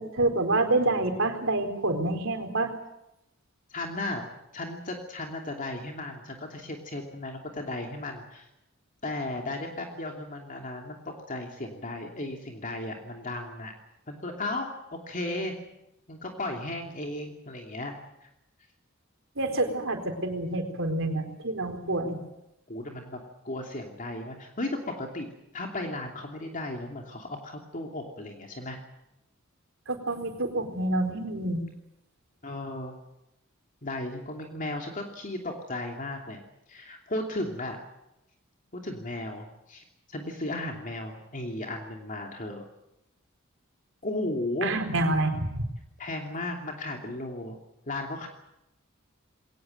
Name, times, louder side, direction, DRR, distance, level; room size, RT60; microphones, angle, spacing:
voice 1, 0.0-2.7 19.4-22.2 29.9-31.6 44.6-45.6, right 2 dB, 65° right, 5 dB, 4.2 m, -27 dB
voice 2, 3.7-4.3 4.5-8.5 9.0-13.7 14.1-15.5 16.1-18.3 22.7-23.2 23.4-28.8 32.4-32.9 33.8-36.4 36.7-37.8 38.7-42.6 44.0-44.7 46.0-47.6 47.9-48.3, left 2 dB, 40° left, 2 dB, 2.9 m, -35 dB
22.0 x 19.0 x 9.4 m, 0.89 s
head